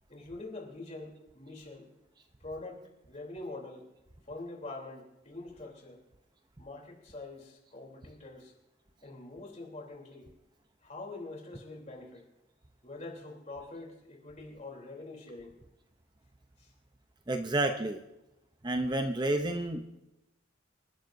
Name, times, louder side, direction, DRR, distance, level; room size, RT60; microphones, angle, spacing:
voice 1, 0.1-1.9 2.4-3.9 4.3-6.0 6.6-8.5 9.0-10.3 10.8-12.3 12.8-15.5 16.6-16.7, left 2 dB, 35° left, 0 dB, 3.3 m, -44 dB
voice 2, 17.3-18.0 18.6-20.0, right 2 dB, 20° right, 6 dB, 0.7 m, -30 dB
27.5 x 12.5 x 2.7 m, 0.94 s
head